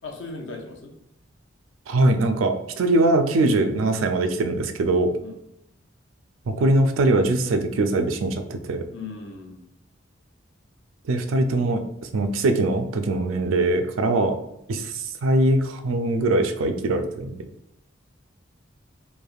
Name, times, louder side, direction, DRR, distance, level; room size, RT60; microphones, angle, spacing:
voice 1, 0.0-0.9 5.2-5.4 8.9-9.6 14.1-14.2, left 3 dB, 70° left, 1 dB, 0.6 m, -38 dB
voice 2, 1.9-5.1 6.5-8.8 11.1-11.8 12.1-14.4 14.7-17.4, right 2 dB, 85° right, 7 dB, 0.4 m, -22 dB
3.2 x 2.5 x 2.3 m, 0.83 s
head